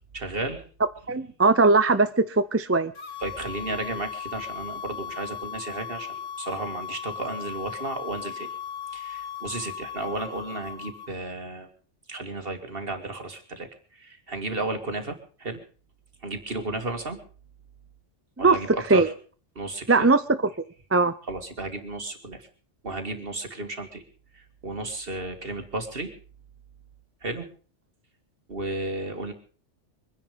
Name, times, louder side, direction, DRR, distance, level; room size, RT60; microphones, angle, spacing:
voice 1, 0.1-0.6 3.2-8.5 8.9-11.7 12.1-15.6 16.2-17.2 18.4-19.1 19.6-20.1 21.3-22.5 22.8-24.0 24.3-26.1 27.2-27.5 28.5-29.3, right 2 dB, 50° right, 2.4 m, -33 dB
voice 2, 1.1-2.9 18.4-18.6 18.9-19.1 19.9-20.4 20.9-21.1, right 3 dB, 15° right, 0.5 m, -20 dB
sound 1, 2.9-11.1, left 8 dB, 55° left, 1.7 m, -37 dB
24.0 x 10.0 x 5.2 m
omnidirectional pair, 1.2 m